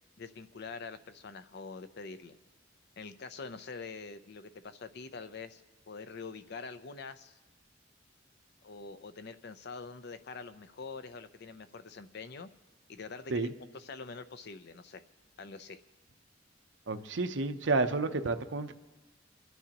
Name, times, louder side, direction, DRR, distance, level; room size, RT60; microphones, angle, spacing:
voice 1, 0.2-2.4 3.0-7.4 8.6-12.5 12.9-15.0 15.4-15.8, left 4 dB, 60° left, 12 dB, 0.6 m, -45 dB
voice 2, 16.9-18.7, right 3 dB, 70° right, 8 dB, 0.7 m, -30 dB
26.0 x 11.0 x 3.0 m, 1.2 s
head